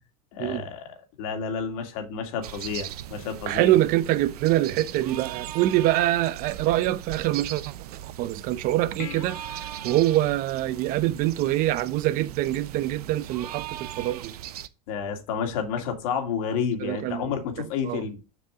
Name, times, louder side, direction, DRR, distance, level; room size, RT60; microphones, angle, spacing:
voice 1, 0.3-3.7 14.9-18.2, left 6 dB, 65° left, 2.5 m, -30 dB
sound 1, 2.4-14.7, right 12 dB, 85° right, 0.7 m, -39 dB
voice 2, 3.5-14.3 16.8-17.4 17.8-18.0, right 15 dB, 45° right, 0.7 m, -25 dB
sound 2, 9.0-11.7 15.8-15.9, left 10 dB, 45° left, 1.7 m, -44 dB
7.3 x 6.7 x 3.7 m
supercardioid pair, 115°, 19 cm